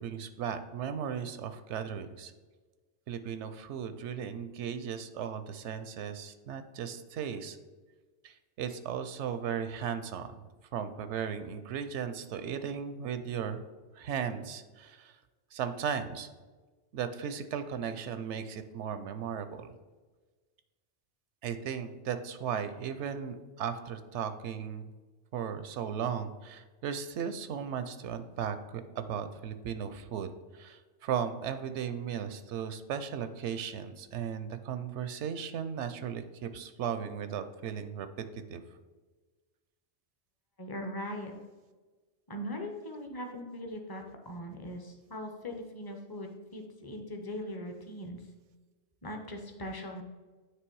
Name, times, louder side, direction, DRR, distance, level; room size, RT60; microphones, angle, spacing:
voice 1, 0.0-2.3 3.1-7.6 8.2-10.3 10.7-13.6 13.9-15.2 15.5-16.3 16.9-19.7 21.4-24.9 25.3-30.3 30.5-38.1 38.5-38.6, right 8 dB, 80° right, 10 dB, 0.9 m, -36 dB
voice 2, 40.6-41.3 42.3-48.2 49.0-50.0, left 1 dB, 25° left, 3 dB, 0.7 m, -40 dB
9.2 x 3.2 x 4.6 m, 1.3 s
omnidirectional pair, 1.2 m